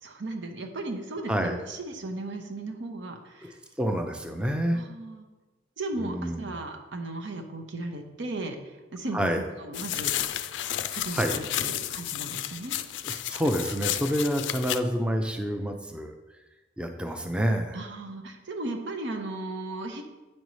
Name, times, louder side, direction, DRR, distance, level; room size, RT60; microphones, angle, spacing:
voice 1, 0.0-3.6 4.7-5.2 5.8-8.6 8.9-10.1 10.9-12.8 17.7-20.0, right 2 dB, 85° right, 4 dB, 0.9 m, -36 dB
voice 2, 1.3-1.6 3.4-3.5 3.8-4.8 6.0-6.5 9.1-9.4 11.1-11.4 13.0-16.1 16.8-17.8, equal, 5° right, 4 dB, 0.4 m, -28 dB
sound 1, 9.7-14.8, left 12 dB, 85° left, 0.4 m, -32 dB
8.8 x 5.3 x 3.1 m, 1.2 s
head